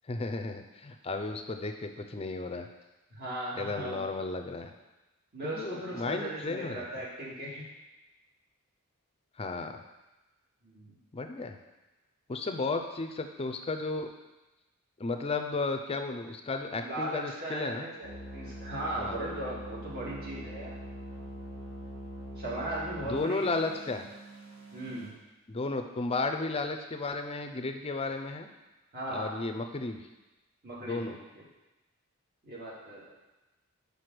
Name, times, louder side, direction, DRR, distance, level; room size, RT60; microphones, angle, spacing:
voice 1, 0.1-2.7 3.6-4.7 5.4-6.9 9.4-9.8 11.1-11.6 12.3-14.1 15.0-17.9 19.0-19.2 23.0-24.1 25.5-28.5 29.1-30.0 30.8-31.2, left 3 dB, 25° left, 6 dB, 0.5 m, -34 dB
voice 2, 3.1-4.1 5.3-7.7 10.6-10.9 16.8-20.7 22.4-23.5 24.7-25.1 28.9-29.3 30.6-31.2 32.4-33.0, right 1 dB, 45° right, -6 dB, 2.0 m, -37 dB
sound 1, 18.0-25.1, right 1 dB, 65° right, 2.7 m, -43 dB
5.2 x 4.9 x 6.0 m, 1.1 s
head